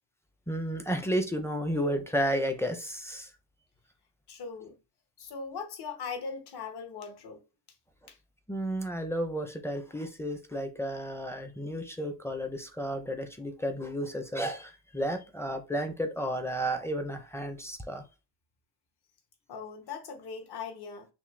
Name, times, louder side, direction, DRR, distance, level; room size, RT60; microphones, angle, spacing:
voice 1, 0.5-3.3 8.5-18.0, equal, 5° left, 0.5 m, -32 dB
voice 2, 4.3-4.8 5.2-7.4 8.1-8.2 19.5-21.1, left 5 dB, 60° left, 1.2 m, -40 dB
5.9 x 2.1 x 3.2 m
cardioid pair, 155°, 45 cm